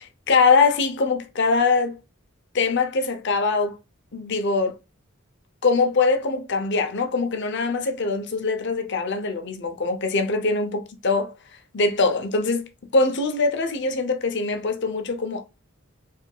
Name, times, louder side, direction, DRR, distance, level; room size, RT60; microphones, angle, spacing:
voice 1, 0.3-2.0 2.5-3.8 4.1-4.8 5.6-11.3 11.7-12.7 12.9-15.4, left 4 dB, 55° left, 0.8 m, -22 dB
4.5 x 3.5 x 2.3 m
head